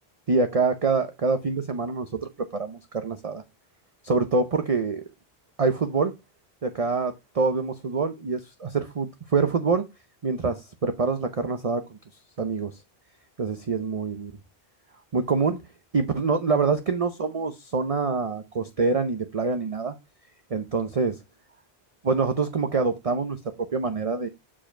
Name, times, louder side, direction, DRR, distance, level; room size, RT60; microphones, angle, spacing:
voice 1, 0.3-3.4 4.0-5.0 5.6-6.1 6.6-9.8 10.2-12.0 12.4-12.7 13.4-14.3 15.1-15.6 15.9-19.9 20.5-21.2 22.0-24.3, right 4 dB, 35° right, 0.8 m, -25 dB
7.3 x 4.8 x 4.4 m
omnidirectional pair, 1.1 m